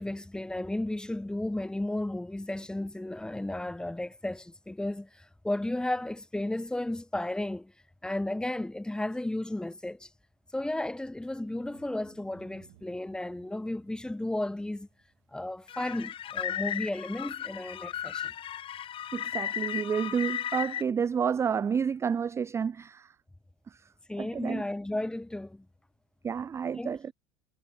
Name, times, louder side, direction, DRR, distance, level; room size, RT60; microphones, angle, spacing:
voice 1, 0.0-7.7 8.0-10.1 10.5-14.9 15.3-18.3 24.1-25.7 26.8-27.1, left 1 dB, 5° left, 1.0 m, -34 dB
sound 1, 11.4-16.9 17.1-17.2 17.4-17.5 17.7-17.8, right 26 dB, 70° right, 3.0 m, -62 dB
sound 2, 15.7-20.8, left 10 dB, 40° left, 1.1 m, -35 dB
voice 2, 19.1-23.1 24.2-24.6 26.2-27.0, right 7 dB, 20° right, 0.4 m, -30 dB
hypercardioid pair, 95°, 14 cm